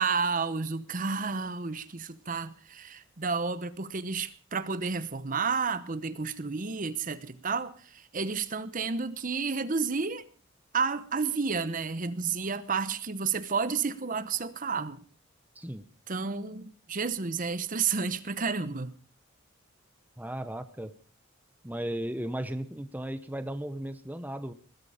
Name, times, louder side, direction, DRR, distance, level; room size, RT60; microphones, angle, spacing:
voice 1, 0.0-10.2 10.7-15.0 16.1-18.9, right 5 dB, 40° right, 0.9 m, -31 dB
voice 2, 15.5-15.9 20.2-20.9 21.6-24.5, right 1 dB, 10° right, 0.8 m, -35 dB
20.5 x 13.0 x 5.0 m
head